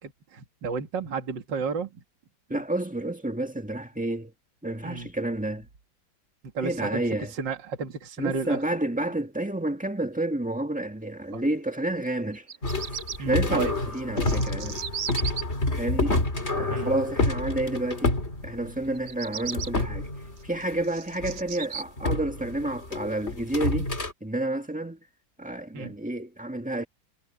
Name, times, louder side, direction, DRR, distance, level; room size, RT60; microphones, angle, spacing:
voice 1, 0.0-1.9 4.8-5.1 6.5-7.0 7.3-8.6 11.3-11.4 13.2-13.7 16.7-16.9 25.7-25.9, right 5 dB, 65° right, 2.6 m, -32 dB
voice 2, 2.5-4.3 4.6-5.7 6.6-7.3 8.2-12.5 13.2-13.7 13.9-14.8 15.8-16.2 16.6-18.2 18.4-20.1 20.4-24.0 24.2-25.0 25.4-26.8, right 1 dB, 5° right, 1.7 m, -29 dB
Bird vocalization bird call bird song, 12.3-13.2 13.9-15.4 18.9-19.7 20.4-21.8, right 7 dB, 50° right, 1.1 m, -35 dB
sound 1, 12.6-19.1 19.4-20.8 21.2-21.4 22.0-24.1, left 2 dB, 30° left, 3.5 m, -28 dB
omnidirectional pair, 2.1 m